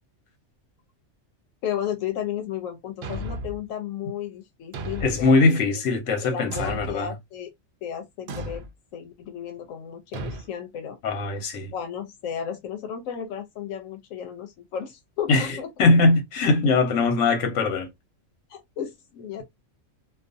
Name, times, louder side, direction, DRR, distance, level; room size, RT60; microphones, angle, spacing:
voice 1, 1.6-5.6 6.2-7.5 7.8-8.7 8.9-11.0 11.7-15.7 18.5-19.4, left 9 dB, 90° left, 1.0 m, -33 dB
Thump thud, 3.0-3.6 4.7-5.3 6.5-7.1 8.3-8.7 10.1-10.5, right 1 dB, 65° right, 0.7 m, -34 dB
voice 2, 5.0-7.1 11.0-11.7 15.3-17.9, left 3 dB, 70° left, 1.1 m, -21 dB
2.4 x 2.4 x 2.5 m
omnidirectional pair, 1.3 m